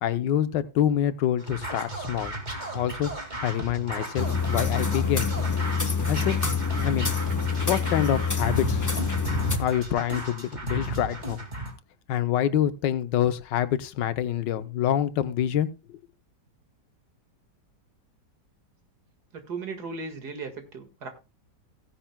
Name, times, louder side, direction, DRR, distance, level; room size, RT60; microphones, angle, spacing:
voice 1, 0.0-2.3 2.7-3.1 3.4-5.3 6.0-6.4 6.7-7.1 7.7-8.8 9.6-11.4 12.1-16.0, left 10 dB, 85° left, 1.4 m, -26 dB
Scratching (performance technique), 1.4-11.7, right 2 dB, 25° right, 2.2 m, -34 dB
sound 1, 4.2-9.6, left 5 dB, 15° left, 0.7 m, -26 dB
voice 2, 19.3-21.1, right 4 dB, 65° right, 2.3 m, -36 dB
16.0 x 10.0 x 2.2 m
omnidirectional pair, 1.9 m